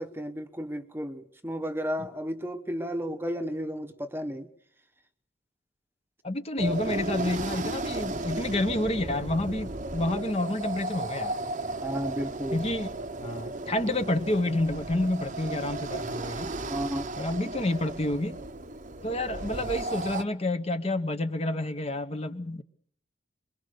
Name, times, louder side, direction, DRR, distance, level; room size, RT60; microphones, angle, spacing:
voice 1, 0.0-4.5 11.8-12.6 16.7-17.1, equal, 10° right, 1.0 m, -33 dB
voice 2, 6.2-11.4 12.5-12.9 13.2-16.5 17.2-18.4 19.0-22.6, left 1 dB, 30° left, 0.9 m, -29 dB
sound 1, 6.6-20.2, right 2 dB, 40° right, 0.9 m, -35 dB
22.5 x 22.5 x 6.7 m
head